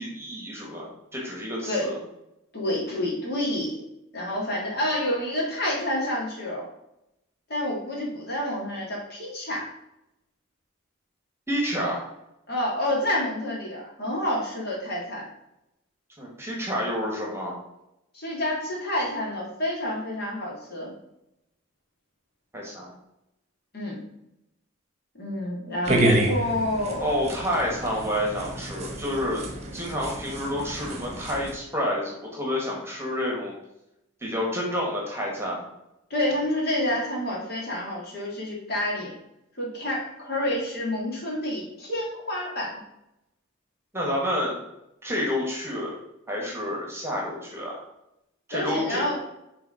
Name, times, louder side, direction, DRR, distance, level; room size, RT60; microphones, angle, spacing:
voice 1, 0.0-2.0 11.5-12.0 16.2-17.6 22.5-22.9 27.0-29.5 29.7-33.5 34.2-35.6 43.9-44.6 45.0-45.9 46.3-47.8 48.5-49.0, equal, 10° right, -2 dB, 1.5 m, -29 dB
voice 2, 2.5-3.8 4.1-6.7 7.5-9.7 12.5-15.3 18.1-20.9 23.7-24.0 25.2-27.1 36.1-39.1 39.6-42.8 48.5-49.2, left 1 dB, 45° left, -3 dB, 2.1 m, -28 dB
sound 1, 25.9-31.5, right 1 dB, 30° right, 1.1 m, -29 dB
6.9 x 3.6 x 4.9 m, 0.86 s
head